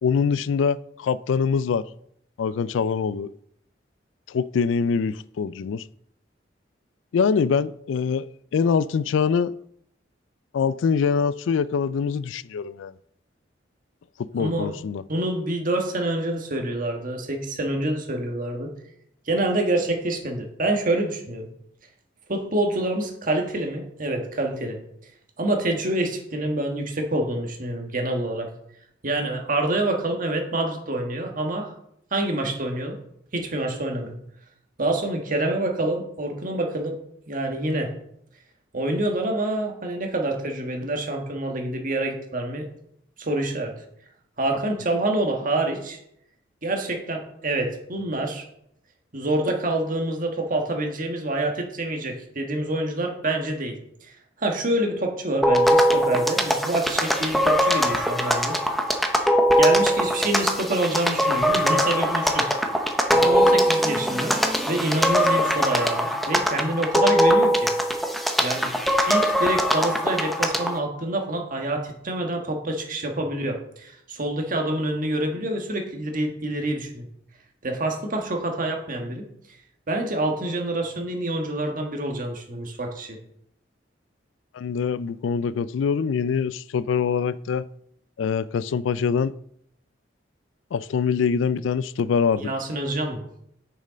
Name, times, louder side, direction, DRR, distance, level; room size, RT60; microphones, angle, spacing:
voice 1, 0.0-1.9 2.4-3.3 4.3-5.8 7.1-8.3 8.5-9.5 10.5-12.9 14.3-15.0 84.5-87.7 88.2-89.3 90.7-92.5, left 6 dB, 90° left, 0.3 m, -24 dB
voice 2, 14.4-14.7 15.1-18.7 19.3-21.5 22.3-24.8 25.4-28.5 29.0-31.7 32.1-33.0 33.3-34.2 34.8-37.0 37.3-37.9 38.7-42.6 43.2-43.7 44.4-46.0 46.6-48.5 49.1-58.6 59.6-62.5 63.1-64.3 64.7-67.7 68.4-68.7 69.1-77.1 77.6-79.3 79.9-83.2 92.4-93.2, right 1 dB, 45° right, 1.5 m, -27 dB
sound 1, 55.4-70.8, equal, ahead, 0.8 m, -21 dB
6.7 x 6.4 x 5.1 m
head